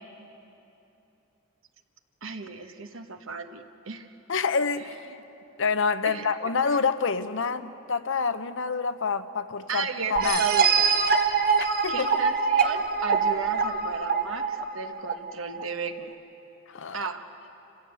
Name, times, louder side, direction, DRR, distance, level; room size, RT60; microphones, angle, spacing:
voice 1, 2.2-4.1 4.8-5.0 6.0-6.3 9.7-11.0 11.9-16.1 16.9-17.2, right 5 dB, 65° right, 7 dB, 1.3 m, -34 dB
voice 2, 4.3-5.0 5.6-10.4 11.8-12.1 16.7-17.0, left 5 dB, 60° left, 11 dB, 0.8 m, -27 dB
sound 1, 10.2-15.6, right 5 dB, 45° right, 1.2 m, -24 dB
29.0 x 16.0 x 8.2 m, 2.9 s
head